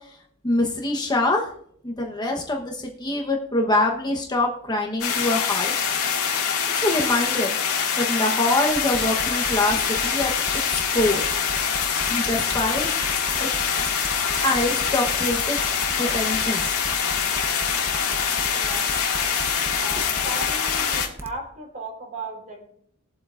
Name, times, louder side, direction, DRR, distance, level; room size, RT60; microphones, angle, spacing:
voice 1, 0.4-1.5 1.8-5.7 6.7-7.5 8.0-10.3 10.7-11.2 12.1-12.9 13.4-13.5 14.4-15.6 16.0-16.8, left 2 dB, 20° left, 1 dB, 1.1 m, -24 dB
sound 1, 5.0-21.1, left 7 dB, 85° left, 2.1 m, -24 dB
sound 2, 8.7-21.4, right 1 dB, 10° right, 0.8 m, -37 dB
voice 2, 18.4-19.1 19.8-22.7, right 2 dB, 40° right, 0 dB, 3.9 m, -36 dB
20.5 x 7.7 x 2.5 m, 0.66 s
head